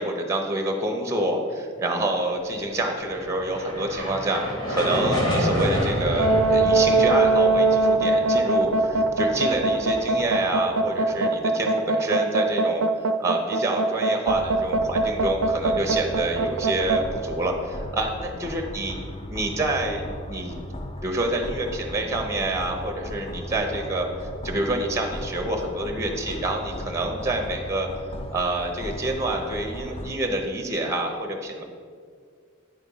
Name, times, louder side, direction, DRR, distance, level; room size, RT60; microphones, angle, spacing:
voice 1, 0.0-4.4 4.7-12.9 13.2-19.0 19.3-20.6 21.0-24.1 24.4-27.9 28.3-31.6, right 1 dB, 15° right, 3 dB, 0.7 m, -27 dB
sound 1, 2.8-11.2, equal, 75° left, 1.8 m, -30 dB
sound 2, 6.1-17.0, right 2 dB, 85° right, 0.4 m, -21 dB
sound 3, 14.2-30.1, left 1 dB, 30° left, 0.5 m, -37 dB
8.9 x 3.6 x 5.4 m, 2.1 s
head